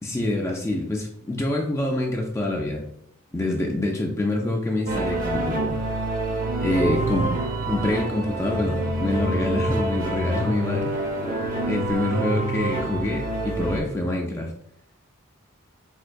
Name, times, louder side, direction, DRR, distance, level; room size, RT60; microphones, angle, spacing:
voice 1, 0.0-2.8 3.3-5.8 6.6-7.3 7.7-10.9 11.7-14.5, left 1 dB, 10° left, 0 dB, 0.3 m, -26 dB
sound 1, 4.9-13.8, right 2 dB, 40° right, 0.6 m, -27 dB
4.3 x 2.2 x 2.5 m, 0.72 s
head